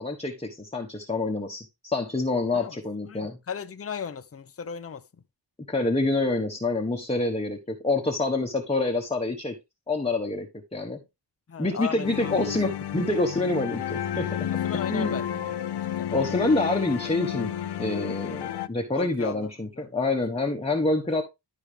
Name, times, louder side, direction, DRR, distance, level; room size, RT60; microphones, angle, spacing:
voice 1, 0.0-3.4 5.7-9.6 9.9-10.5 10.7-11.0 11.6-14.5 14.9-15.5 16.1-17.5 17.8-21.2, left 2 dB, 15° left, 1.2 m, -27 dB
voice 2, 3.0-5.0 11.5-12.5 14.5-16.1 18.9-19.5 19.8-20.2 20.4-20.5 20.8-20.9, left 7 dB, 30° left, 0.8 m, -37 dB
sound 1, 12.0-18.7, left 10 dB, 65° left, 0.7 m, -31 dB
12.5 x 4.9 x 3.3 m
wide cardioid pair, 90°, 44 cm